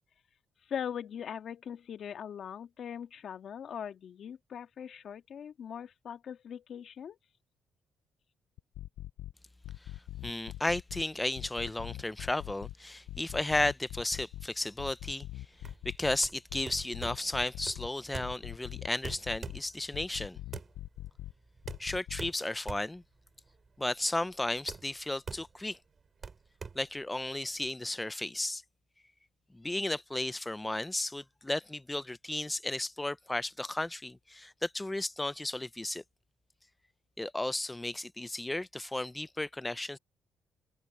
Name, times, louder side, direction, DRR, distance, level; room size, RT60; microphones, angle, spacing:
voice 1, 0.6-7.2, left 8 dB, 60° left, 1.8 m, -41 dB
sound 1, 8.6-9.3 9.6-11.0 11.4-12.7 13.1-14.5 14.8-16.2 16.5-17.9 18.2-19.6 19.9-21.3 21.6-22.3, left 15 dB, 90° left, 0.6 m, -42 dB
voice 2, 10.2-15.3 15.8-20.4 21.8-23.0 23.8-25.8 26.7-28.6 29.5-36.0 37.2-40.0, left 2 dB, 10° left, 0.6 m, -34 dB
sound 2, 15.5-27.7, right 5 dB, 40° right, 5.4 m, -46 dB
open air
cardioid pair, 90°, 0 cm